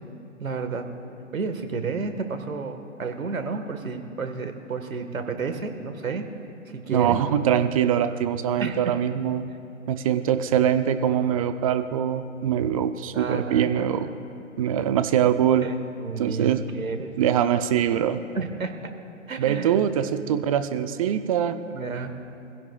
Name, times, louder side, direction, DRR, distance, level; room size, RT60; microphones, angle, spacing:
voice 1, 0.4-0.9 1.3-6.3 6.7-7.2 8.6-8.8 13.1-13.8 15.6-17.1 18.3-18.7 19.3-19.7 21.7-22.1, right 4 dB, 85° right, 7 dB, 1.5 m, -31 dB
voice 2, 6.9-9.5 9.9-14.1 14.6-15.7 16.2-16.6 17.2-18.2 19.4-21.6, right 9 dB, 30° right, 10 dB, 0.5 m, -23 dB
25.5 x 16.5 x 2.3 m, 2.6 s
hypercardioid pair, 130°, 40 cm